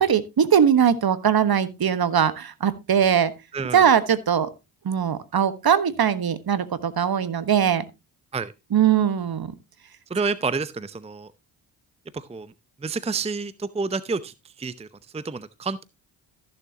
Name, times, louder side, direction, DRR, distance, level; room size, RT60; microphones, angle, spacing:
voice 1, 0.0-3.3 3.7-4.5 4.8-7.8 8.7-9.5, right 8 dB, 50° right, 1.4 m, -20 dB
voice 2, 3.5-3.9 8.3-8.5 10.1-11.3 12.1-12.5 12.8-14.9 15.1-15.8, right 4 dB, 15° right, 0.7 m, -29 dB
14.5 x 7.1 x 2.8 m
supercardioid pair, 45°, 48 cm